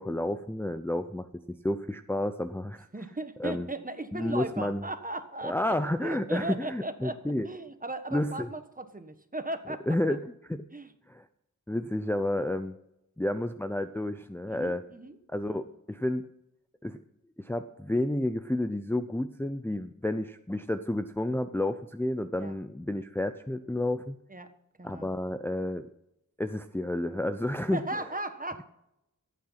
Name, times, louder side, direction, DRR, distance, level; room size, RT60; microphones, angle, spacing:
voice 1, 0.0-2.9 3.4-3.7 4.1-4.8 5.4-7.5 8.1-8.5 9.9-10.2 10.5-10.6 11.1-11.2 11.7-12.7 13.2-14.8 15.3-16.3 16.8-17.0 17.4-24.2 24.8-25.9 26.4-27.8, left 1 dB, 5° left, 8 dB, 0.6 m, -30 dB
voice 2, 2.9-5.7 6.0-10.0 10.7-10.9 14.5-15.2 22.4-22.5 24.3-24.5 24.8-25.1 27.7-28.6, right 2 dB, 25° right, 9 dB, 1.5 m, -37 dB
15.5 x 8.8 x 5.8 m, 0.84 s
wide cardioid pair, 70°, 32 cm